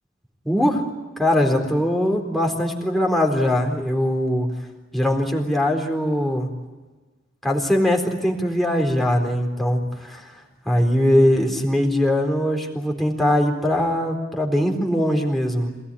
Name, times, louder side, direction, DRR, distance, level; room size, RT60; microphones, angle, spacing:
voice 1, 0.4-0.9 1.2-4.5 4.9-6.5 7.4-10.3 10.6-15.7, left 1 dB, ahead, 1 dB, 4.1 m, -21 dB
27.5 x 19.0 x 10.0 m, 1.2 s
head